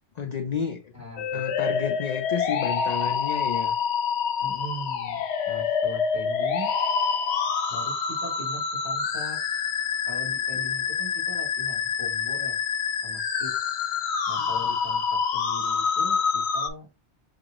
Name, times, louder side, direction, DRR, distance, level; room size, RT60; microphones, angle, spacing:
voice 1, 0.2-0.9 1.3-3.8 14.4-14.5, left 6 dB, 50° left, 0.5 m, -31 dB
voice 2, 0.9-1.9 4.4-6.7 7.7-9.4 10.0-12.6 13.0-13.5 14.3-16.9, equal, 15° right, 2.7 m, -40 dB
sound 1, 1.2-16.7, left 6 dB, 75° left, 0.9 m, -27 dB
6.1 x 2.6 x 2.9 m
omnidirectional pair, 1.1 m